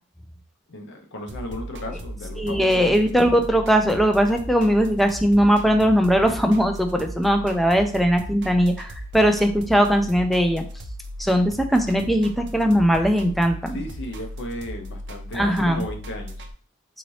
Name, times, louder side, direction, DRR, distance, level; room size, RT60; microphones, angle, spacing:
voice 1, 0.7-3.0 13.7-16.5, left 1 dB, 65° left, 3 dB, 0.7 m, -35 dB
sound 1, 1.3-16.5, equal, 60° right, 0.5 m, -36 dB
voice 2, 2.4-10.6 11.2-13.8 15.3-15.8, equal, ahead, 5 dB, 0.4 m, -20 dB
4.0 x 2.7 x 3.1 m, 0.42 s
head